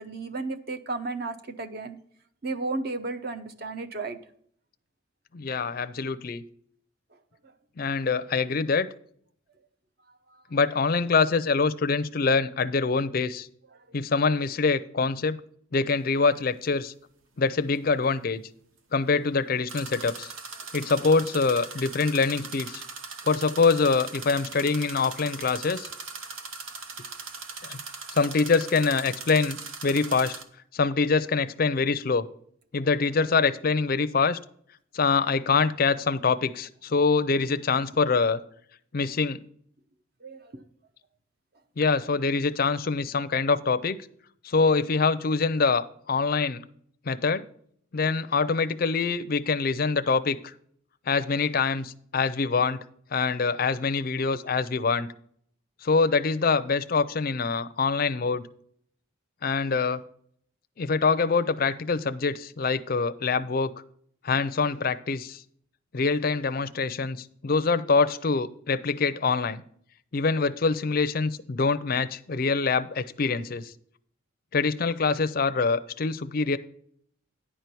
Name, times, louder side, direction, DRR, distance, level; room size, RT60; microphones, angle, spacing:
voice 1, 0.0-2.0 2.4-4.2 13.7-13.9 20.0-20.1 40.2-40.6, right 3 dB, 45° right, 10 dB, 0.7 m, -33 dB
voice 2, 5.3-6.4 7.8-8.9 10.5-13.5 13.9-15.4 15.7-16.9 17.4-18.4 18.9-20.3 20.7-22.8 23.3-25.9 27.6-27.8 28.1-30.3 30.7-32.3 32.7-34.4 34.9-38.4 38.9-39.4 41.8-44.0 44.4-46.6 47.1-47.4 47.9-50.5 51.1-52.8 53.1-55.1 55.8-58.5 59.4-60.0 60.8-63.7 64.2-65.4 65.9-69.6 70.1-73.7 74.5-76.6, left 4 dB, 45° left, 12 dB, 0.4 m, -25 dB
sound 1, 15.9-16.0 19.7-30.4, right 4 dB, 75° right, 1.1 m, -40 dB
10.0 x 4.5 x 6.7 m, 0.63 s
head